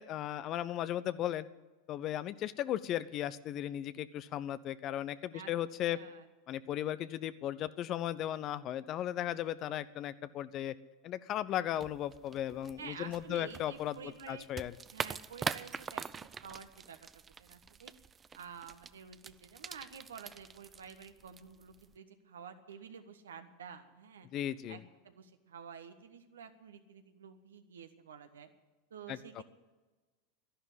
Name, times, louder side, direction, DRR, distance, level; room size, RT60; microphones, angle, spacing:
voice 1, 0.0-1.5 1.9-6.0 6.5-10.7 11.0-14.0 14.3-14.7 24.3-24.8 29.1-29.4, left 12 dB, 45° left, 15 dB, 0.7 m, -36 dB
voice 2, 5.9-6.3 12.8-14.5 14.9-17.9 18.3-24.3 24.7-28.5 28.9-29.4, right 7 dB, 80° right, 8 dB, 1.4 m, -50 dB
sound 1, 11.7-22.0, right 6 dB, 25° right, 0.5 m, -44 dB
12.5 x 11.0 x 9.9 m, 1.2 s
hypercardioid pair, 90°, 0 cm